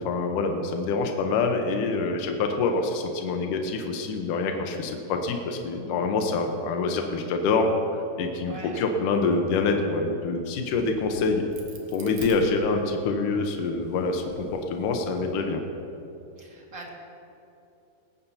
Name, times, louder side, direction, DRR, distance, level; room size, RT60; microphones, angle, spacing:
voice 1, 0.0-11.4 11.9-15.6, left 3 dB, 80° left, 3 dB, 2.5 m, -26 dB
voice 2, 8.4-8.8 16.4-16.9, right 2 dB, 30° right, -2 dB, 1.9 m, -42 dB
Crack, 10.5-13.1 13.7-15.3, right 3 dB, 75° right, 2.9 m, -47 dB
18.5 x 17.0 x 2.8 m, 2.8 s
omnidirectional pair, 3.7 m